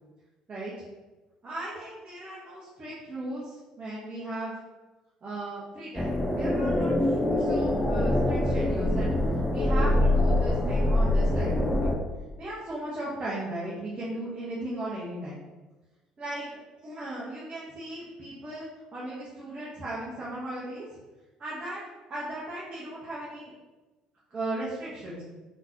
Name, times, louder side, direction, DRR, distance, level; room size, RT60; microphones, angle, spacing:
voice 1, 1.4-4.5 5.2-9.1 9.5-11.9 12.4-15.4 16.2-20.9 21.4-21.8 22.1-23.5 24.3-25.2, right 1 dB, 35° right, -8 dB, 1.2 m, -37 dB
sound 1, 5.9-11.9, left 1 dB, 5° left, 0.7 m, -24 dB
3.8 x 3.3 x 2.9 m, 1.2 s
figure-of-eight pair, 55°, 3 cm